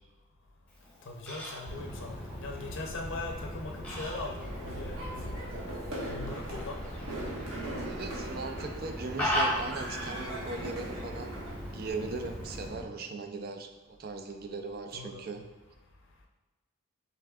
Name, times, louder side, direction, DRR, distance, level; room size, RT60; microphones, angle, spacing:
Fowl, 0.7-12.7, equal, 5° left, 0.8 m, -39 dB
voice 1, 1.0-5.4 6.1-6.8 14.9-15.3, left 2 dB, 60° left, 1 dB, 0.6 m, -40 dB
sound 1, 1.6-12.8, equal, 20° right, 1.1 m, -41 dB
sound 2, 4.4-11.5, right 1 dB, 70° right, 1.2 m, -41 dB
voice 2, 7.8-11.4 11.7-15.5, right 3 dB, 45° right, 5 dB, 0.4 m, -39 dB
5.7 x 3.5 x 2.4 m, 1.2 s
head